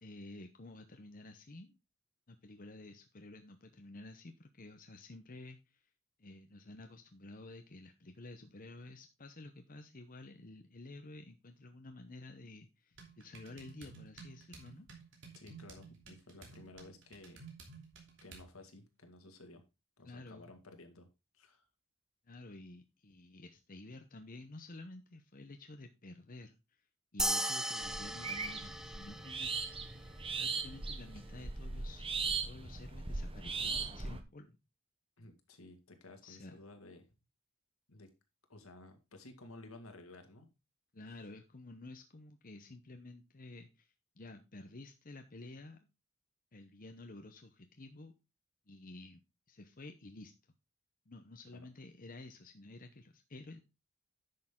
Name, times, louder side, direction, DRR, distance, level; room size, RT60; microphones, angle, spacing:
voice 1, 0.0-1.8 2.3-5.9 6.2-14.9 20.0-20.5 22.3-26.8 27.1-29.5 30.4-34.5 36.2-36.6 40.9-45.8 46.5-48.1 48.7-49.2 49.5-50.3 51.1-53.6, left 2 dB, 40° left, 6 dB, 0.9 m, -51 dB
sound 1, 13.0-18.5, right 4 dB, 60° right, 3.0 m, -54 dB
voice 2, 15.3-17.4 18.2-19.6 20.0-21.1 21.3-21.7 35.2-37.1 37.9-38.1 38.5-40.5 51.5-51.7, left 2 dB, 75° left, 5 dB, 2.2 m, -54 dB
sound 2, 27.2-29.9, right 1 dB, 5° right, 0.6 m, -37 dB
sound 3, 27.8-34.2, right 4 dB, 25° right, 1.1 m, -39 dB
10.5 x 6.6 x 3.8 m, 0.26 s
head